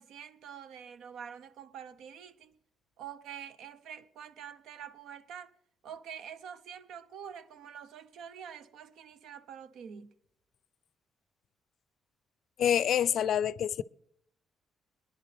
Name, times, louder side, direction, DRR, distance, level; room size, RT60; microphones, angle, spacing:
voice 1, 0.0-2.5 3.0-5.5 5.8-10.1, right 8 dB, 85° right, 0.9 m, -46 dB
voice 2, 12.6-13.8, left 9 dB, 65° left, 0.4 m, -27 dB
24.0 x 10.5 x 3.4 m
cardioid pair, 130°, 0 cm